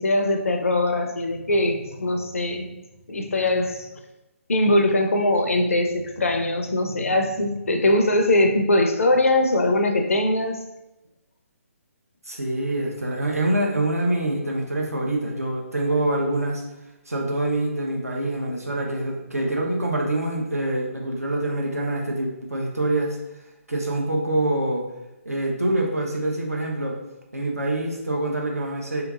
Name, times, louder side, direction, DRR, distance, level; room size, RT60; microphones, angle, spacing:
voice 1, 0.0-2.7 3.1-3.9 4.5-10.6, left 1 dB, 70° left, 5 dB, 0.5 m, -21 dB
voice 2, 12.2-16.6 17.1-23.2 23.7-24.9 25.2-27.0 27.3-29.0, right 1 dB, 85° right, 0 dB, 0.8 m, -25 dB
3.6 x 2.9 x 2.4 m, 0.96 s
figure-of-eight pair, 140°, 8 cm